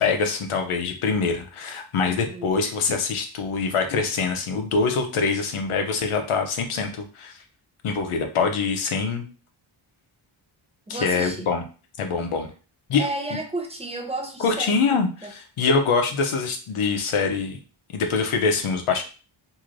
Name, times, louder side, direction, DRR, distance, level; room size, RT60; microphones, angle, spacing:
voice 1, 0.0-7.4 7.8-9.3 10.9-11.6 12.0-12.5 12.9-13.0 14.4-17.6 17.9-19.0, left 4 dB, 80° left, 5 dB, 0.7 m, -24 dB
voice 2, 2.0-2.6 10.9-11.5 13.0-15.3, right 2 dB, 15° right, 1 dB, 0.6 m, -33 dB
3.1 x 2.7 x 2.5 m, 0.36 s
wide cardioid pair, 90°, 49 cm